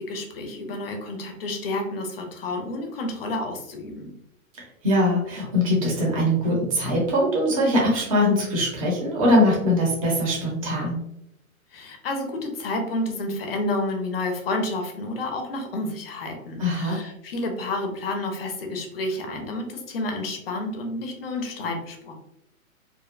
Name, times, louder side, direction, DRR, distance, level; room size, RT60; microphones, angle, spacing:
voice 1, 0.0-4.1 11.7-22.1, left 2 dB, 45° left, 4 dB, 0.5 m, -30 dB
voice 2, 4.8-11.0 16.6-17.0, left 1 dB, 25° right, -3 dB, 0.6 m, -22 dB
2.6 x 2.1 x 2.4 m, 0.80 s
hypercardioid pair, 155°, 43 cm